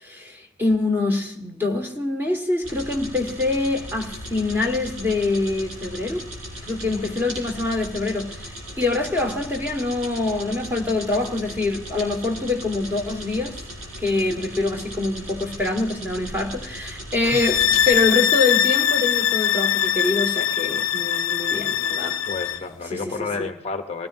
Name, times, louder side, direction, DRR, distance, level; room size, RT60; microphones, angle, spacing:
voice 1, 0.0-6.3 6.7-13.6 14.0-22.2 22.9-23.5, left 3 dB, 10° right, 1.6 m, -25 dB
sound 1, 2.6-18.0, equal, 80° right, 6.8 m, -37 dB
voice 2, 6.9-7.3 17.2-17.4 22.2-24.1, left 3 dB, 30° left, 0.8 m, -31 dB
sound 2, 17.2-22.6, left 11 dB, 75° left, 0.4 m, -22 dB
23.0 x 16.5 x 2.6 m
head